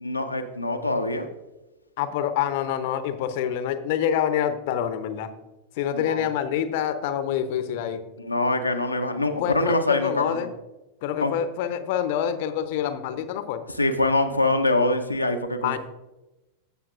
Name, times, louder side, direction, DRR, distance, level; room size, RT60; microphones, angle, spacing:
voice 1, 0.0-1.3 5.9-6.2 8.2-10.4 11.2-11.3 13.8-15.8, left 2 dB, 85° left, 4 dB, 0.6 m, -24 dB
voice 2, 2.0-5.3 5.8-8.0 9.4-10.5 11.0-13.6 15.6-15.8, left 9 dB, 50° left, 10 dB, 0.7 m, -26 dB
15.0 x 7.1 x 2.5 m, 1.0 s
figure-of-eight pair, 90°, 0 cm